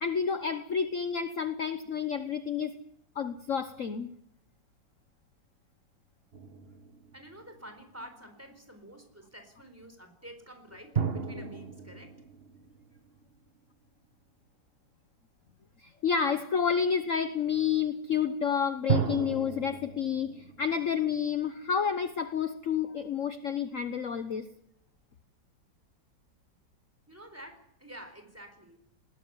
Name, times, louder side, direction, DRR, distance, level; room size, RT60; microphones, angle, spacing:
voice 1, 0.0-2.7 3.1-4.1 11.3-11.4 15.8-24.5, left 7 dB, 50° left, 10 dB, 1.3 m, -30 dB
sound 1, 6.3-8.0 10.9-13.6 18.9-21.9, right 6 dB, 35° right, 1.5 m, -35 dB
voice 2, 7.1-12.2 27.1-28.9, right 1 dB, 5° right, 7 dB, 4.1 m, -49 dB
20.5 x 18.0 x 9.6 m, 0.73 s
omnidirectional pair, 2.0 m